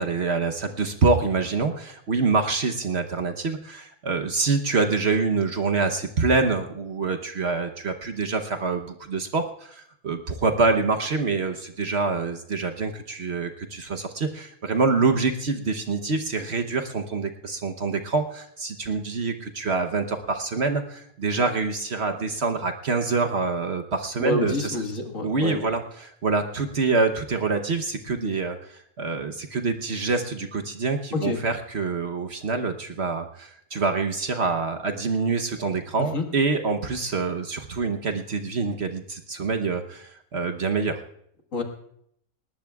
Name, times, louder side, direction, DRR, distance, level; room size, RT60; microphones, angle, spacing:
voice 1, 0.0-24.8 25.2-41.0, right 4 dB, 50° right, 6 dB, 1.1 m, -26 dB
voice 2, 24.2-25.7 31.1-31.4 36.0-36.2 41.5-41.6, left 2 dB, 60° left, 4 dB, 2.0 m, -27 dB
19.5 x 19.0 x 2.3 m, 0.69 s
omnidirectional pair, 1.6 m